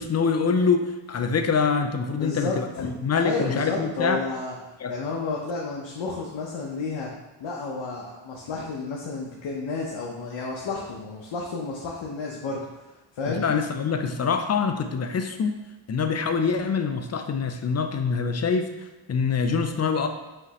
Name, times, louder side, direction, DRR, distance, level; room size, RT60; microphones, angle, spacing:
voice 1, 0.0-4.2 4.8-4.9 13.3-15.5 15.9-18.7 19.1-20.1, left 5 dB, 35° left, 6 dB, 0.4 m, -25 dB
voice 2, 2.2-2.9 3.2-4.6 4.9-7.1 7.4-12.6 13.1-13.5, left 3 dB, 65° left, -2 dB, 0.7 m, -31 dB
5.0 x 3.2 x 2.8 m, 1.1 s
cardioid pair, 80°, 49 cm